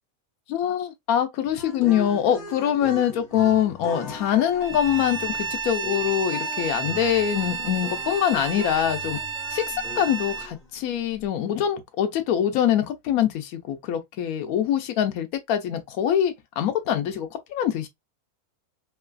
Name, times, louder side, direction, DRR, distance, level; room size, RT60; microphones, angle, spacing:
voice 1, 0.5-9.2 9.5-17.9, left 10 dB, 70° left, 1.0 m, -24 dB
sound 1, 1.5-10.7, left 2 dB, 35° left, 1.2 m, -40 dB
Bowed string instrument, 4.6-10.5, right 5 dB, 60° right, 0.6 m, -31 dB
3.1 x 2.3 x 2.3 m
omnidirectional pair, 1.6 m